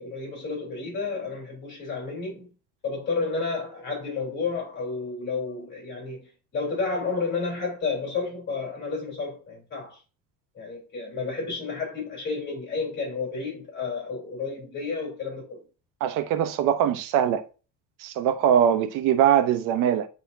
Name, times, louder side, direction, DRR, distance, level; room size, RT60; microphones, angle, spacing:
voice 1, 0.0-2.5 2.8-10.0 10.6-15.6, left 4 dB, 30° left, 3.7 m, -31 dB
voice 2, 16.0-17.4 18.0-20.1, right 9 dB, 65° right, 0.9 m, -22 dB
9.0 x 4.1 x 2.7 m
cardioid pair, 145°, 34 cm